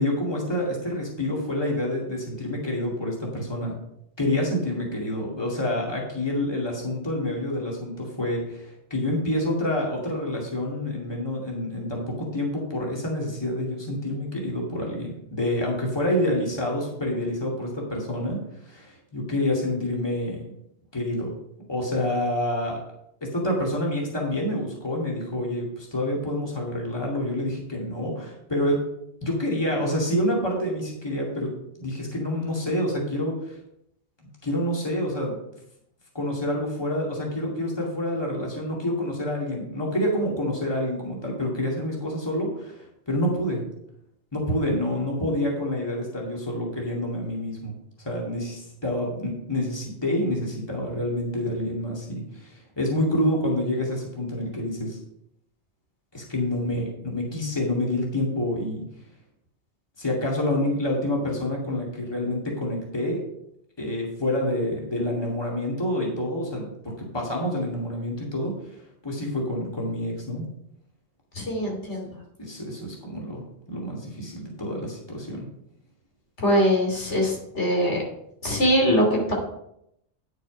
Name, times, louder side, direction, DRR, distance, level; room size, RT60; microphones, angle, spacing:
voice 1, 0.0-3.8 4.2-18.4 18.7-20.4 20.9-21.3 21.7-22.8 23.3-28.8 29.2-31.5 31.8-33.6 34.4-35.4 36.1-42.8 43.1-43.6 44.3-47.7 48.0-55.0 56.1-58.8 60.0-63.2 63.8-66.7 67.0-68.5 69.0-70.5 72.4-73.4 73.7-75.4, left 1 dB, 20° left, -2 dB, 2.3 m, -27 dB
voice 2, 71.4-72.1 76.4-78.0 78.4-79.3, equal, 80° left, -1 dB, 3.0 m, -22 dB
9.7 x 6.5 x 5.0 m, 0.77 s
omnidirectional pair, 1.2 m